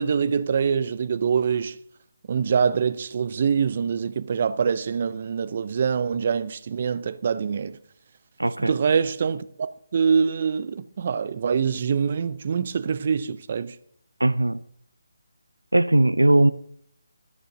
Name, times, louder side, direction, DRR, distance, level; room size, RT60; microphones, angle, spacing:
voice 1, 0.0-1.8 2.3-7.8 8.6-13.8, right 6 dB, 45° right, 0.6 m, -24 dB
voice 2, 8.4-8.7 14.2-14.6 15.7-16.5, right 1 dB, 90° right, 0.5 m, -19 dB
12.5 x 6.5 x 6.4 m
figure-of-eight pair, 150°, 0 cm